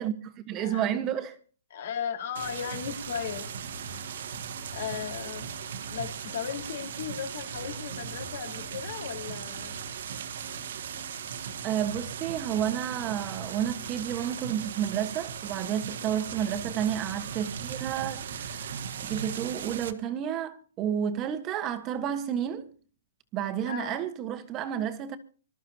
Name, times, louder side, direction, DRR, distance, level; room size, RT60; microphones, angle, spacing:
voice 1, 0.0-1.4 11.6-18.7 19.0-22.7 23.3-25.2, right 9 dB, 25° right, 1.4 m, -31 dB
voice 2, 1.7-3.5 4.7-5.5 5.9-9.8 15.9-16.2 23.6-24.0, left 8 dB, 55° left, 4.5 m, -36 dB
sound 1, 2.4-19.9, right 7 dB, 65° right, 1.4 m, -38 dB
25.0 x 13.5 x 2.9 m
hypercardioid pair, 155°, 0 cm